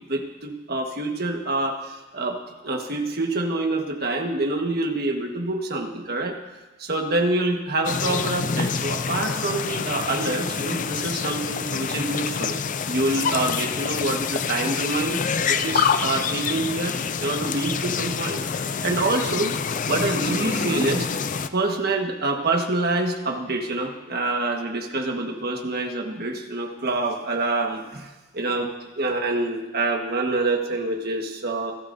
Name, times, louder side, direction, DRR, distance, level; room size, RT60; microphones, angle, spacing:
voice 1, 0.1-2.4 2.6-6.4 6.8-12.5 12.9-15.2 15.5-16.9 17.2-18.4 18.8-19.5 19.9-21.1 21.5-28.7 29.0-31.8, right 2 dB, 50° right, 3 dB, 1.5 m, -26 dB
sound 1, 7.8-21.5, left 6 dB, 40° left, 0.4 m, -27 dB
27.0 x 12.0 x 2.7 m, 1.1 s
head